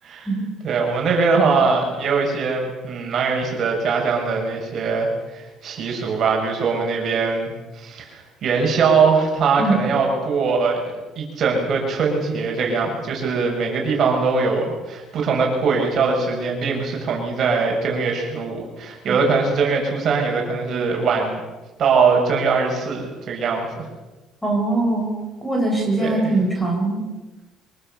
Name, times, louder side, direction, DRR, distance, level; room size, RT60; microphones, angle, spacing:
voice 1, 0.6-10.8 11.2-21.4 21.8-23.9 26.0-26.3, right 4 dB, 50° right, 0 dB, 7.2 m, -21 dB
voice 2, 24.4-25.1 25.4-27.0, right 2 dB, 5° left, 1 dB, 8.0 m, -21 dB
25.0 x 24.0 x 7.0 m, 1.2 s
cardioid pair, 125°, 0 cm